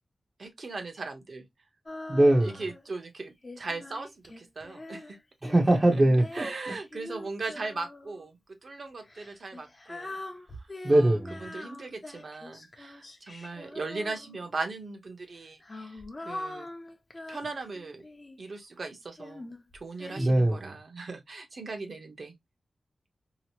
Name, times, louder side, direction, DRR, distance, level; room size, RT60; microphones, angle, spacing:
voice 1, 0.4-1.4 2.4-4.1 4.4-5.2 5.9-6.0 6.3-10.2 10.9-16.7 17.3-18.0 18.4-22.3, right 3 dB, 60° right, 0.8 m, -38 dB
Female singing, 1.9-2.9 3.4-8.3 9.0-14.6 15.4-18.5 19.2-20.3, left 2 dB, 35° left, 0.6 m, -43 dB
voice 2, 2.1-2.6 5.4-6.5 10.8-11.5 20.2-20.8, right 1 dB, 30° right, 0.6 m, -22 dB
2.9 x 2.0 x 2.8 m
wide cardioid pair, 105°, 0 cm